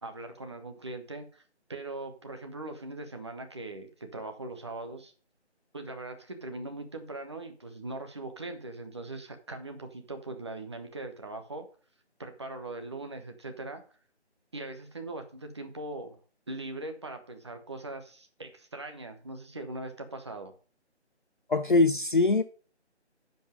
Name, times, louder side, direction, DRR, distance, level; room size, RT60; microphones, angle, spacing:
voice 1, 0.0-1.4 1.7-5.1 5.7-11.7 12.2-13.8 14.5-16.2 16.5-20.5, right 2 dB, 25° right, 1.0 m, -40 dB
voice 2, 21.5-22.4, left 3 dB, 45° left, 0.6 m, -22 dB
10.0 x 5.3 x 5.2 m
figure-of-eight pair, 160°, 34 cm